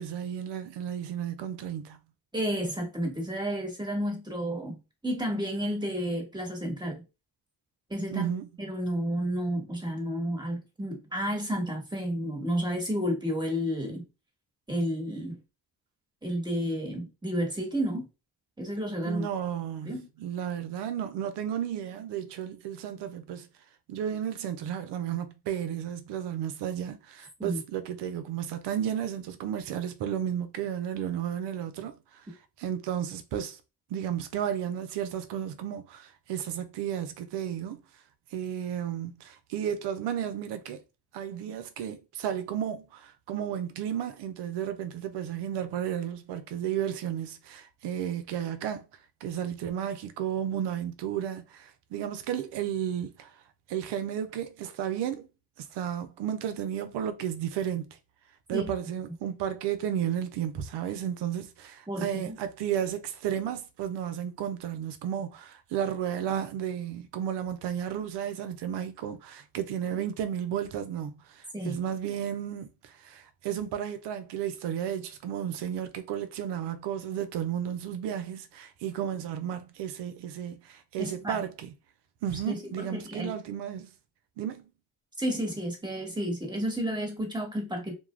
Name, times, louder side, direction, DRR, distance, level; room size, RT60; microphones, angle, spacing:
voice 1, 0.0-2.0 8.1-8.5 19.0-23.5 23.9-32.2 32.6-33.6 33.9-37.8 38.3-40.8 41.1-48.8 49.2-53.3 53.7-55.3 55.6-58.0 58.5-81.7 82.2-83.9 84.4-84.7, right 9 dB, 80° right, 0.6 m, -33 dB
voice 2, 2.3-7.0 7.9-8.3 8.6-14.0 14.7-15.4 16.2-18.1 18.6-19.2 19.8-20.1 27.4-27.6 58.5-58.7 61.9-62.4 71.5-71.8 81.0-81.4 82.5-83.3 85.2-87.9, equal, 10° right, 1.3 m, -31 dB
2.3 x 2.1 x 3.1 m
supercardioid pair, 55°, 41 cm